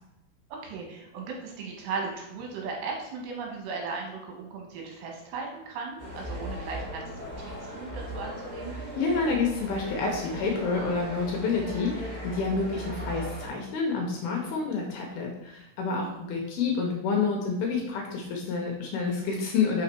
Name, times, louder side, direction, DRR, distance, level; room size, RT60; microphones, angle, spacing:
voice 1, 0.6-7.2 7.5-8.7 15.9-16.2, right 4 dB, 75° right, 0 dB, 3.3 m, -37 dB
Restaurant ambience, 6.0-13.5, equal, 55° right, 3.8 m, -38 dB
voice 2, 9.0-19.8, left 4 dB, 75° left, 1 dB, 2.5 m, -28 dB
6.1 x 5.6 x 4.5 m, 0.90 s
omnidirectional pair, 5.1 m